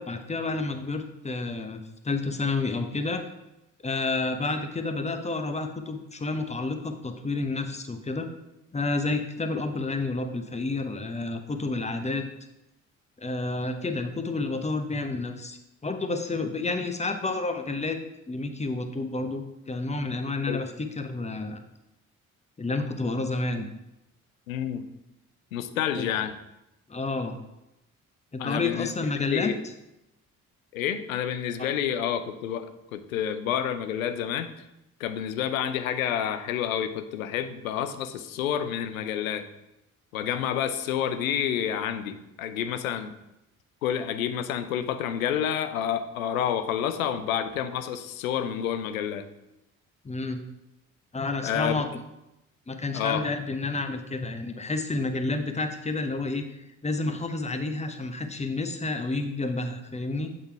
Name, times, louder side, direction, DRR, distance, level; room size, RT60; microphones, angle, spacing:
voice 1, 0.0-3.2 3.8-8.3 8.7-12.3 13.2-18.0 18.3-21.6 22.6-23.7 26.0-26.1 26.9-27.4 28.3-29.5 31.6-31.7 50.0-50.4 51.1-51.9 52.7-56.5 56.8-60.3, left 3 dB, 15° left, 7 dB, 0.9 m, -30 dB
voice 2, 24.5-24.9 25.5-26.3 28.4-28.9 29.3-29.6 30.7-34.5 35.0-39.5 40.1-43.1 43.8-49.3 51.4-51.8 52.9-53.3, left 9 dB, 80° left, 10 dB, 0.6 m, -29 dB
8.3 x 3.8 x 4.5 m, 0.90 s
figure-of-eight pair, 45°, 41 cm